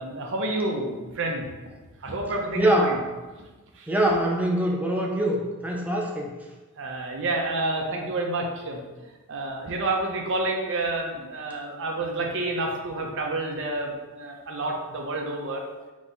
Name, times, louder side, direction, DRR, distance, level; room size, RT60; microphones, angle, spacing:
voice 1, 0.0-1.5 2.0-3.0 3.8-3.9 6.8-8.8 9.3-15.6, right 2 dB, 60° right, 1 dB, 0.7 m, -29 dB
voice 2, 2.6-2.9 3.9-6.3, right 1 dB, 5° right, -1 dB, 0.4 m, -23 dB
3.9 x 3.0 x 3.9 m, 1.2 s
head